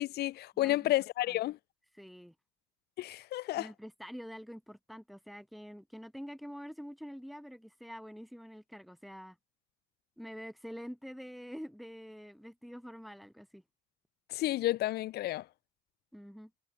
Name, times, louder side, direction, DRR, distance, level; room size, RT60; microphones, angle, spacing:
voice 1, 0.0-1.6 3.0-3.7 14.3-15.4, left 15 dB, 70° left, 1.1 m, -31 dB
voice 2, 0.5-0.9 1.3-1.4 1.9-2.3 3.5-9.4 10.2-13.6 16.1-16.5, equal, ahead, 3.3 m, -46 dB
cardioid pair, 110°, 17 cm